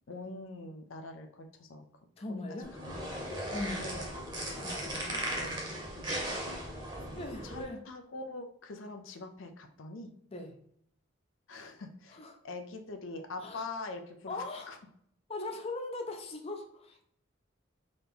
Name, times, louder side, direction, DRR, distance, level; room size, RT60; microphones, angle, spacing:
voice 1, 0.1-1.9 2.3-2.4 2.8-3.3 3.8-4.6 4.9-5.3 7.4-10.1 11.5-14.8, left 3 dB, 80° left, 6 dB, 0.5 m, -44 dB
voice 2, 2.2-2.7 3.5-3.8 4.6-5.6 7.2-7.8 10.3-10.5 12.1-12.4 13.4-13.7 14.3-14.7 15.3-17.1, left 2 dB, 30° left, 3 dB, 0.4 m, -40 dB
sound 1, 2.6-7.6, right 1 dB, 20° right, 1.0 m, -37 dB
3.9 x 2.8 x 3.4 m, 0.69 s
head